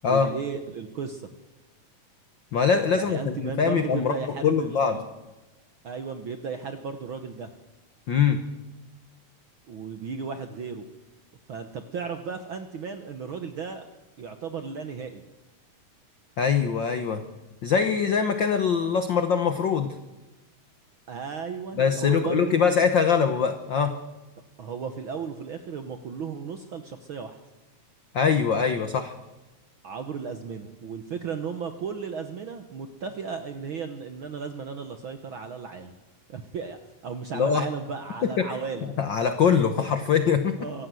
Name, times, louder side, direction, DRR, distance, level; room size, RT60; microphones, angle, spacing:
voice 1, 0.0-1.3 2.9-5.1 5.8-7.5 9.7-10.8 11.5-13.9 14.2-15.2 21.1-22.8 24.6-27.4 29.8-35.9 36.3-38.9 40.6-40.9, right 6 dB, 65° right, 7 dB, 1.3 m, -35 dB
voice 2, 2.5-5.0 8.1-8.4 16.4-17.2 17.6-19.9 21.8-24.0 28.1-29.1 37.3-37.7 38.4-38.5 39.0-40.5, left 6 dB, 70° left, 8 dB, 1.1 m, -23 dB
24.5 x 15.5 x 7.7 m, 1.1 s
omnidirectional pair, 3.6 m